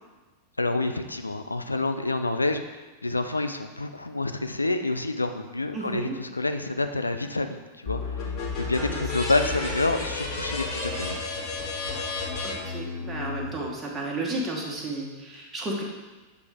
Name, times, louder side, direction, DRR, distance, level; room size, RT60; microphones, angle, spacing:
voice 1, 0.6-11.2, left 2 dB, 80° left, 7 dB, 0.3 m, -28 dB
voice 2, 5.7-6.2 8.8-9.7 12.4-15.8, right 2 dB, 15° right, -2 dB, 1.3 m, -33 dB
sound 1, 7.9-13.5, left 4 dB, 30° left, 1.9 m, -32 dB
6.9 x 3.3 x 4.9 m, 1.2 s
figure-of-eight pair, 90°, 0 cm